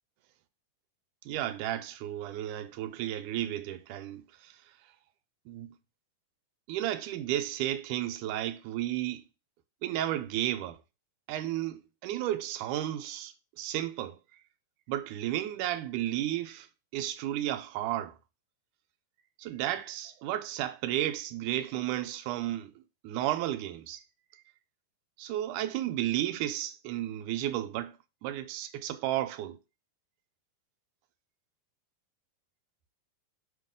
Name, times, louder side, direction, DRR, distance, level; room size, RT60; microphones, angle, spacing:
voice 1, 1.3-4.5 5.5-5.7 6.7-9.3 9.8-10.8 11.3-14.2 14.9-16.7 16.9-18.2 19.5-22.7 23.0-24.0 25.2-28.0 28.2-29.6, right 13 dB, 85° right, 2.2 m, -33 dB
6.2 x 5.4 x 3.7 m
omnidirectional pair, 3.6 m